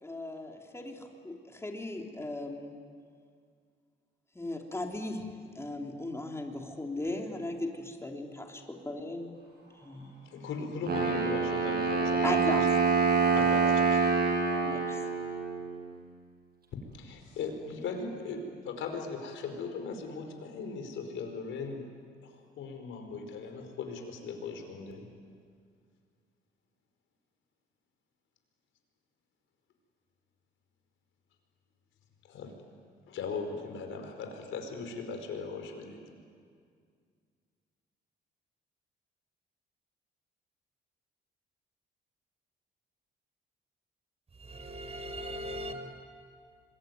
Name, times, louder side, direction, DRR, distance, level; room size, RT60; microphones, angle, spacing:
voice 1, 0.0-2.8 4.4-5.3 5.6-9.3 9.8-10.1 10.8-10.9 12.2-12.7 14.6-15.0, left 2 dB, 15° left, 3.4 m, -37 dB
voice 2, 10.2-12.6 13.3-14.0 14.6-14.7 16.9-21.8 22.2-25.1 32.2-32.5 33.1-36.0, left 4 dB, 80° left, 4.8 m, -38 dB
Wind instrument woodwind instrument, 10.9-15.8, right 5 dB, 50° right, 6.7 m, -26 dB
voice 3, 44.5-45.7, equal, 30° right, 4.2 m, -39 dB
26.5 x 22.5 x 9.4 m
cardioid pair, 90°, 20 cm